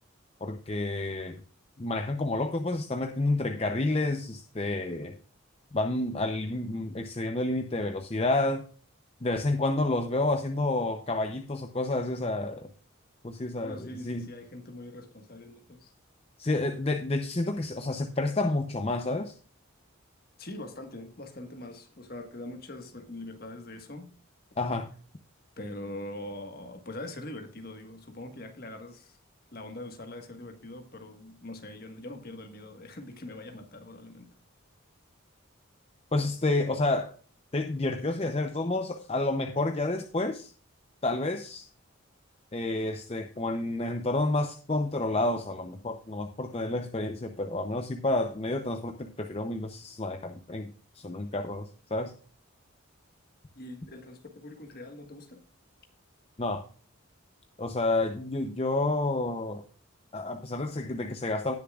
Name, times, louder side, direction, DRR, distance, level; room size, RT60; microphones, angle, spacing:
voice 1, 0.4-1.4 1.8-5.2 5.7-8.6 9.2-12.7 13.2-14.3 16.4-19.4 24.6-24.9 36.1-37.1 37.5-40.5 41.0-41.7 42.5-52.1 56.4-56.6 57.6-59.6 60.1-61.5, left 2 dB, 30° left, 0.6 m, -29 dB
voice 2, 13.6-15.9 20.4-24.1 25.6-29.2 29.5-34.3 53.5-55.4, left 1 dB, 45° left, 1.5 m, -43 dB
18.0 x 6.8 x 2.4 m
head